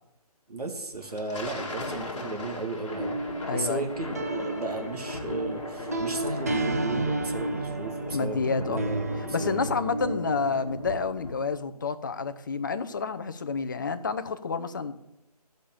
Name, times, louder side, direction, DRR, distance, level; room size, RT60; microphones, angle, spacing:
voice 1, 0.5-3.2 3.5-9.6, right 2 dB, 70° right, 3 dB, 2.1 m, -35 dB
Thunder, 0.9-11.7, left 2 dB, 50° left, 1.8 m, -39 dB
sound 1, 2.9-11.0, right 2 dB, 25° right, 0.4 m, -32 dB
voice 2, 3.4-3.9 8.1-8.8 9.3-14.9, left 4 dB, 30° left, 10 dB, 0.6 m, -29 dB
14.0 x 5.2 x 7.0 m, 0.86 s
figure-of-eight pair, 155°, 20 cm